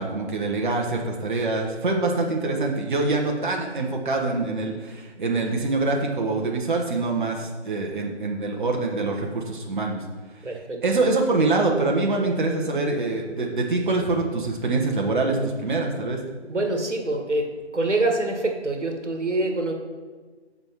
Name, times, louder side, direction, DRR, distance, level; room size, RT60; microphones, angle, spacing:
voice 1, 0.0-10.0 10.5-16.2, right 3 dB, 45° right, 1 dB, 1.2 m, -25 dB
voice 2, 10.4-10.8 16.5-17.5 17.7-19.7, right 2 dB, 90° right, 4 dB, 1.5 m, -25 dB
8.0 x 4.7 x 5.7 m, 1.4 s
figure-of-eight pair, 155°, 34 cm